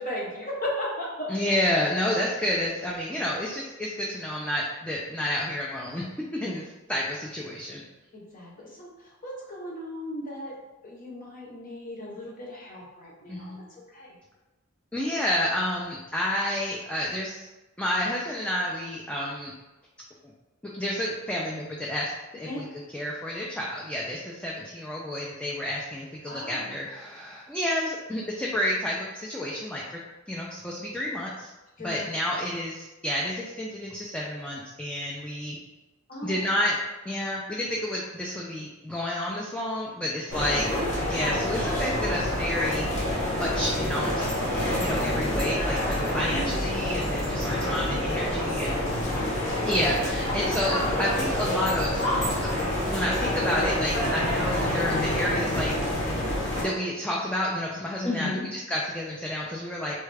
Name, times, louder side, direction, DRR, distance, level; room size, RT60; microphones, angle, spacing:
voice 1, 0.0-1.3 8.1-8.9 9.2-10.5 10.8-13.6 13.9-14.1 22.4-22.6 26.2-26.8 31.8-32.0 36.1-36.4 46.1-46.6 49.2-49.4 58.0-58.4, left 1 dB, 45° left, -3 dB, 0.9 m, -35 dB
voice 2, 1.3-7.8 13.3-13.6 14.9-17.4 17.8-19.5 20.7-30.0 30.3-31.5 31.8-35.6 36.2-36.8 37.1-40.7 41.0-44.3 44.6-48.8 49.6-52.0 52.4-52.5 52.8-55.8 56.6-60.0, left 1 dB, 5° left, -4 dB, 0.3 m, -30 dB
sound 1, 40.3-56.6, left 1 dB, 65° left, 1.1 m, -27 dB
3.2 x 2.3 x 3.3 m, 1.1 s
head